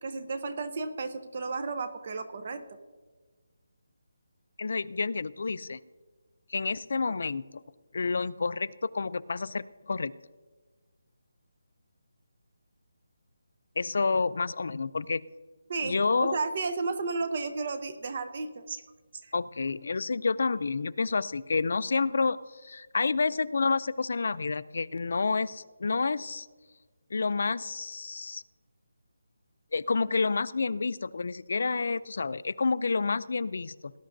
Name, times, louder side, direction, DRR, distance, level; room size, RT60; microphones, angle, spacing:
voice 1, 0.0-2.6 15.7-18.8 19.2-19.3, right 4 dB, 30° right, 10 dB, 0.6 m, -33 dB
voice 2, 4.6-5.8 6.5-7.6 7.9-10.1 13.8-15.3 15.8-16.4 19.3-26.5 27.1-28.4 29.7-33.9, left 4 dB, 45° left, 16 dB, 0.3 m, -29 dB
19.0 x 11.0 x 2.6 m, 1.4 s
hypercardioid pair, 180°, 0 cm